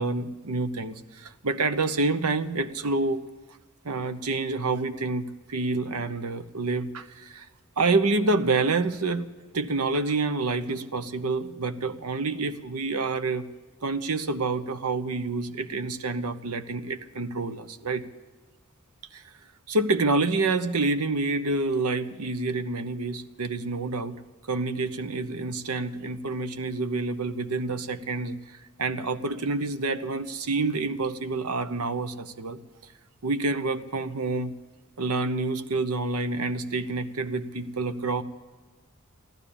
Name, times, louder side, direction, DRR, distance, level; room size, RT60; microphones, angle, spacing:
voice 1, 0.0-3.3 3.8-7.5 7.8-9.3 9.5-13.5 13.8-18.0 19.1-19.2 19.7-24.2 24.5-32.6 33.2-34.5 35.0-38.2, right 3 dB, 90° right, 11 dB, 0.9 m, -28 dB
15.0 x 12.0 x 7.1 m, 1.3 s
head